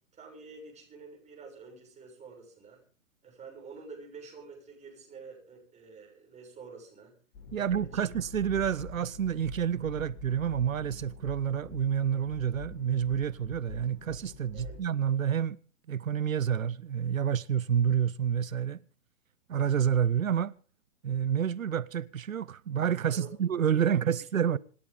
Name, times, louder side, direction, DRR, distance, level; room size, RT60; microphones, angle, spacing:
voice 1, 0.1-2.8 3.2-7.2 7.6-8.0 14.5-14.8 23.0-23.3 23.7-23.9 24.4-24.6, right 4 dB, 15° right, 7.2 m, -48 dB
sound 1, 7.3-14.8, left 3 dB, 45° left, 4.3 m, -46 dB
voice 2, 7.5-15.6 15.9-18.8 19.5-20.5 21.0-24.6, right 8 dB, 85° right, 0.6 m, -29 dB
27.0 x 11.0 x 3.8 m
figure-of-eight pair, 115°, 39 cm